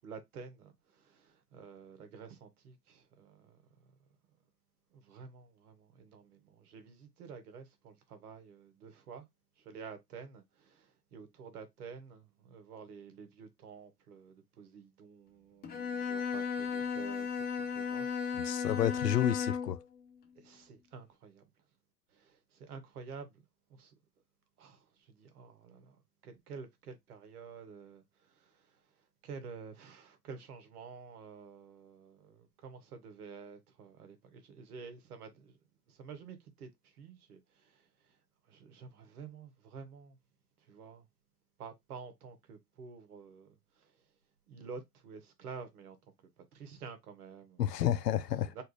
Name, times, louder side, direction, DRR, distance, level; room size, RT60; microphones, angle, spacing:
voice 1, 0.0-3.6 4.9-9.2 9.6-17.4 17.7-18.7 20.4-21.4 22.1-23.4 23.7-23.9 24.6-28.8 29.2-35.6 35.9-38.1 38.5-40.2 40.7-41.1 41.6-43.9 44.5-46.0 46.4-47.8 48.5-48.6, right 5 dB, 70° right, 1.2 m, -50 dB
Bowed string instrument, 15.6-19.8, left 6 dB, 20° left, 0.6 m, -35 dB
voice 2, 18.3-19.8 47.6-48.5, left 11 dB, 85° left, 0.6 m, -30 dB
3.3 x 2.4 x 3.1 m
figure-of-eight pair, 85°, 47 cm